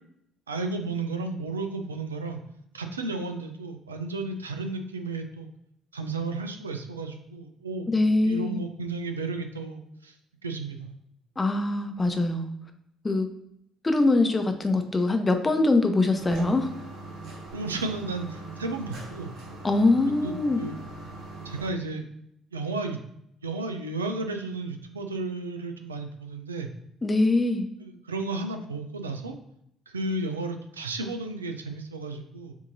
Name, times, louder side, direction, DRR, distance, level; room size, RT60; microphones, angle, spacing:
voice 1, 0.5-2.4 2.7-5.5 5.9-7.9 8.2-10.1 10.4-10.9 17.5-19.3 20.1-20.8 21.4-22.1 22.5-23.0 23.4-26.7 27.8-29.3 29.9-32.5, right 3 dB, 90° right, 6 dB, 0.4 m, -33 dB
voice 2, 7.9-8.6 11.4-12.5 13.0-13.3 13.8-16.7 19.6-20.6 27.0-27.7, left 2 dB, 25° left, 6 dB, 0.8 m, -23 dB
sound 1, 16.2-21.7, right 2 dB, 65° right, 1.1 m, -41 dB
7.0 x 2.7 x 2.7 m, 0.74 s
figure-of-eight pair, 50°, 0 cm